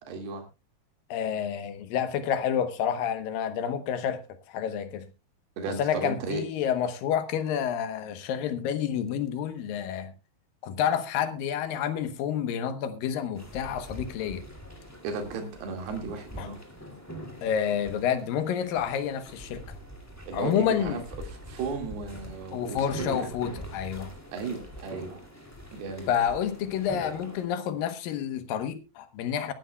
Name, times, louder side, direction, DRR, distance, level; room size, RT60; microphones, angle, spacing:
voice 1, 0.1-0.4 5.6-6.4 15.0-16.6 20.3-21.0 21.5-23.3 24.3-25.2 25.7-26.1, right 4 dB, 80° right, 4.2 m, -34 dB
voice 2, 1.1-4.2 4.5-5.1 5.8-10.1 10.6-14.4 16.4-16.5 17.4-19.6 20.3-21.0 22.5-24.1 26.1-29.5, left 8 dB, 70° left, 2.6 m, -29 dB
sound 1, 13.3-27.5, equal, 5° left, 1.3 m, -43 dB
22.0 x 11.5 x 2.3 m
omnidirectional pair, 4.6 m